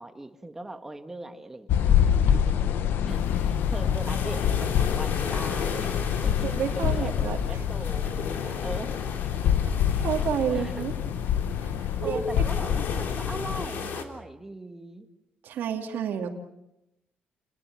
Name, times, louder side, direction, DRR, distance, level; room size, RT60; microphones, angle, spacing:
voice 1, 0.0-2.0 2.5-2.8 3.1-8.9 10.5-10.9 12.0-15.1, right 2 dB, 10° right, 7 dB, 1.7 m, -40 dB
sound 1, 1.7-13.7, left 9 dB, 90° left, 1.1 m, -26 dB
sound 2, 3.1-14.0, left 5 dB, 70° left, 3.4 m, -36 dB
voice 2, 6.4-7.6 10.0-10.9 11.6-12.2 15.4-16.3, right 8 dB, 80° right, 3 dB, 2.3 m, -30 dB
29.5 x 19.5 x 7.3 m, 0.89 s
cardioid pair, 140°, 3 cm